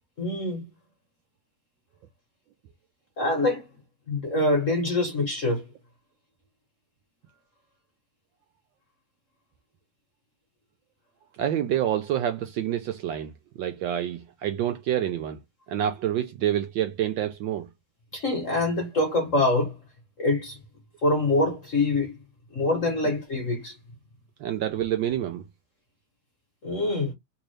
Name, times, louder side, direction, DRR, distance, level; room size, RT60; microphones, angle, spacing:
voice 1, 0.2-0.6 3.2-3.6 4.1-5.6 18.1-19.8 20.2-20.6 21.0-22.2 22.5-23.8 26.6-27.1, left 2 dB, 50° left, 1.0 m, -25 dB
voice 2, 11.4-13.3 13.6-15.4 15.7-17.7 23.0-23.1 24.4-25.4, right 11 dB, 75° right, 1.1 m, -27 dB
3.5 x 2.6 x 3.1 m
omnidirectional pair, 2.4 m